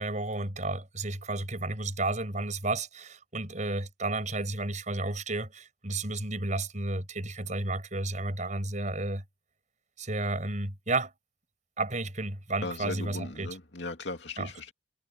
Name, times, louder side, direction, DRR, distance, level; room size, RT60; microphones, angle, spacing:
voice 1, 0.0-9.2 10.0-11.1 11.8-13.5 14.4-14.7, right 2 dB, 40° right, 6.9 m, -32 dB
voice 2, 12.6-14.7, left 2 dB, 65° left, 2.7 m, -37 dB
head